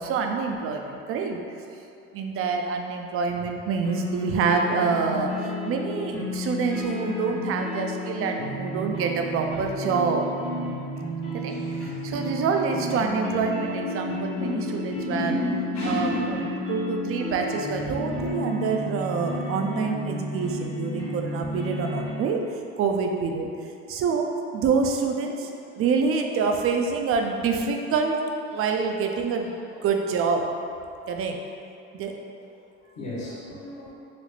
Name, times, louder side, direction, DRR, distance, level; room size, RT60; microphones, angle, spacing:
voice 1, 0.0-1.4 2.1-10.2 11.3-15.4 15.8-22.4 22.8-23.5 23.9-25.5 25.8-28.3 28.5-29.6 29.8-30.5 31.1-31.4 31.9-32.1, right 5 dB, 50° right, 3 dB, 0.4 m, -26 dB
sound 1, 3.8-22.1, left 1 dB, 90° left, 1.3 m, -32 dB
voice 2, 14.3-14.6 15.0-16.4 33.0-33.9, left 1 dB, 65° left, -10 dB, 1.3 m, -30 dB
4.0 x 2.0 x 3.0 m, 2.6 s
cardioid pair, 100°, 29 cm